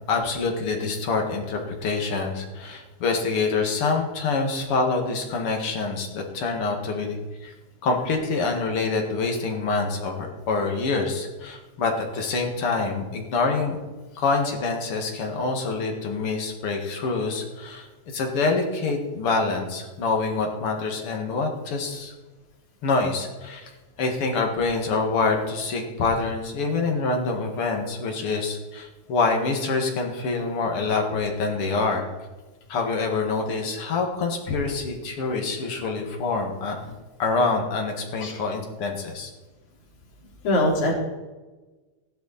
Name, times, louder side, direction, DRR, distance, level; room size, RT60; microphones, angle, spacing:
voice 1, 0.1-7.5 7.8-13.8 14.2-17.9 18.1-22.1 22.8-23.7 24.0-32.1 32.7-36.8 37.2-39.3, left 4 dB, 50° left, 2 dB, 2.7 m, -26 dB
voice 2, 40.4-40.9, left 1 dB, 70° left, -1 dB, 4.0 m, -22 dB
15.5 x 11.5 x 4.3 m, 1.2 s
omnidirectional pair, 3.5 m